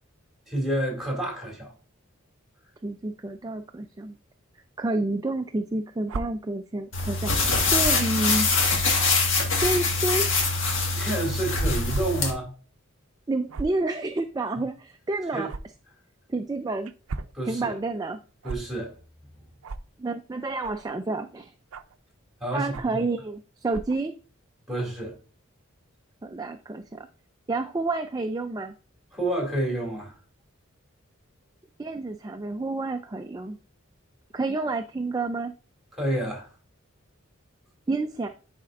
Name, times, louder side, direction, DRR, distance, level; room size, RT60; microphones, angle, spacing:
voice 1, 0.5-1.7 10.9-12.5 15.3-15.5 17.3-17.8 18.4-19.0 22.4-23.0 24.7-25.2 29.1-30.1 35.9-36.5, right 1 dB, ahead, 2.3 m, -29 dB
voice 2, 2.8-4.2 4.8-7.3 7.7-8.5 9.6-10.3 13.3-15.5 16.3-16.9 17.5-18.2 20.0-21.5 22.5-24.1 26.2-27.1 27.5-28.7 31.8-33.6 34.3-35.5 37.9-38.3, right 2 dB, 20° right, 0.3 m, -29 dB
sound 1, 6.1-6.2 7.8-8.0 8.8-8.9 9.6-9.7 10.8-10.9 11.9-12.0 12.4-12.5 13.5-13.8 15.5-15.6 16.9-17.3 18.4-18.6 19.6-19.8 20.6-20.9 21.7-22.0 22.7-23.0 23.7-24.0, right 3 dB, 80° right, 0.5 m, -35 dB
sound 2, 6.9-12.3, left 3 dB, 60° left, 1.7 m, -24 dB
10.5 x 4.3 x 2.5 m
head